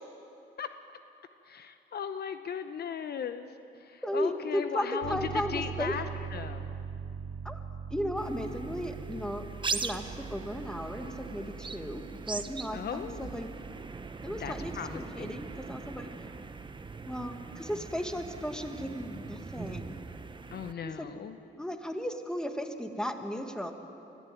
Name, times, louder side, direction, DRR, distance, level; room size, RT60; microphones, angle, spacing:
voice 1, 1.5-3.5 3.8-6.8 12.7-13.4 14.4-15.4 20.5-21.4, left 7 dB, 55° left, 9 dB, 0.9 m, -37 dB
voice 2, 4.0-5.9 7.4-7.6 7.9-9.4 9.7-13.5 14.2-16.1 17.1-20.0 20.8-21.1 21.6-23.7, equal, 5° left, 6 dB, 1.8 m, -35 dB
Piano, 5.0-17.2, right 7 dB, 55° right, 1.8 m, -43 dB
sound 1, 8.2-20.7, right 4 dB, 25° right, 1.0 m, -41 dB
22.5 x 15.0 x 9.2 m, 2.8 s
cardioid pair, 90°, 20 cm